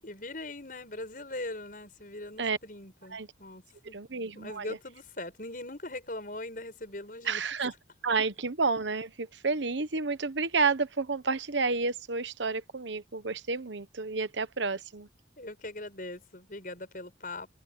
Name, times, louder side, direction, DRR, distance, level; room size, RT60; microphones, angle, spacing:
voice 1, 0.0-4.0 4.3-7.5 15.4-17.5, left 2 dB, 50° left, 7.4 m, -41 dB
voice 2, 3.9-4.8 7.2-7.7 8.0-15.1, right 4 dB, 80° right, 1.1 m, -30 dB
open air
head